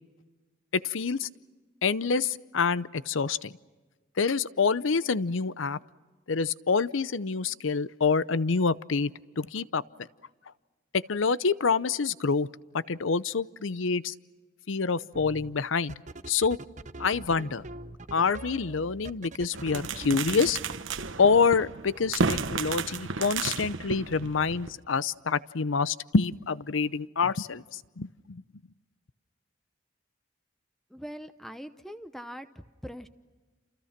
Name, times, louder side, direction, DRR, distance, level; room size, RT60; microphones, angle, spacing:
voice 1, 0.7-1.3 1.8-3.5 4.2-5.8 6.3-9.1 9.4-9.8 10.9-12.5 12.9-14.1 14.7-16.0 16.3-16.6 17.0-17.7 18.1-20.6 21.2-28.4, left 5 dB, 85° left, 17 dB, 0.7 m, -27 dB
sound 1, 15.1-15.5 15.9-20.8, right 2 dB, 40° right, 0.8 m, -43 dB
sound 2, 19.5-24.7, right 4 dB, 90° right, 1.2 m, -32 dB
voice 2, 30.9-32.5 32.8-33.1, equal, ahead, 10 dB, 0.8 m, -41 dB
29.0 x 28.5 x 5.9 m, 1.3 s
head